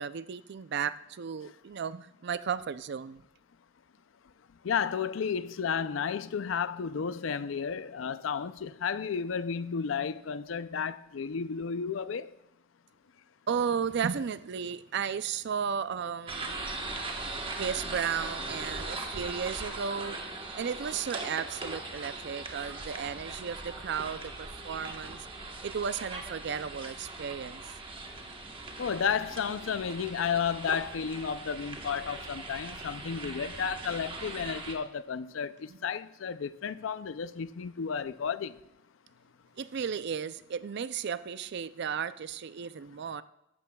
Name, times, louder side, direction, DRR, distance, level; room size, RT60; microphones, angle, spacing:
voice 1, 0.0-3.2 13.5-16.7 17.6-20.2 20.5-25.3 25.6-27.6 39.6-43.2, right 7 dB, 60° right, 0.4 m, -34 dB
voice 2, 4.6-12.3 28.8-38.5, left 6 dB, 70° left, 0.4 m, -32 dB
sound 1, 16.3-34.7, right 3 dB, 25° right, 1.2 m, -40 dB
14.5 x 11.5 x 2.3 m
head